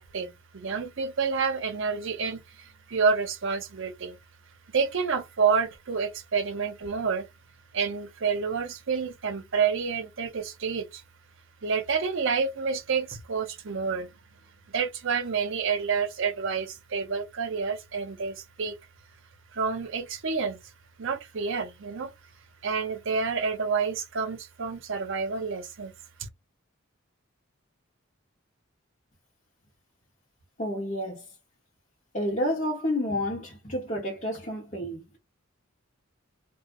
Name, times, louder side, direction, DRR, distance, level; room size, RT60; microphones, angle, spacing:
voice 1, 0.0-4.2 4.7-7.3 7.7-11.0 11.6-14.1 14.7-18.8 19.5-20.6 21.0-22.1 22.6-25.9, right 5 dB, 65° right, 0.7 m, -29 dB
voice 2, 30.6-31.3 32.1-35.2, left 1 dB, 35° left, 0.9 m, -30 dB
2.3 x 2.1 x 3.6 m
head